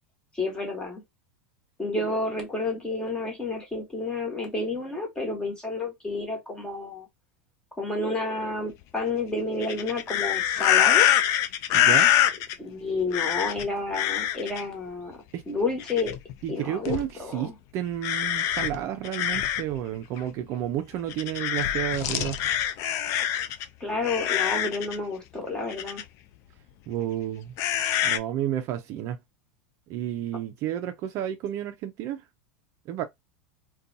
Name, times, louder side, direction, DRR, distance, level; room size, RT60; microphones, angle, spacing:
voice 1, 0.3-1.0 1.8-7.1 7.8-11.1 12.6-15.2 15.5-16.2 16.5-17.5 23.8-26.0, left 3 dB, 10° left, 1.2 m, -30 dB
sound 1, 9.6-12.6 13.1-13.6 13.9-14.6 15.8-16.3 16.9-17.1 18.0-19.8 20.2-20.3 21.1-23.7 24.0-25.0 25.7-26.0 27.6-28.2, left 11 dB, 45° left, 0.4 m, -24 dB
voice 2, 11.7-12.1 15.3-15.4 16.4-22.4 26.9-27.5 28.0-29.2 29.9-32.2 32.9-33.0, right 11 dB, 45° right, 0.4 m, -31 dB
2.6 x 2.2 x 2.5 m
supercardioid pair, 130°, 7 cm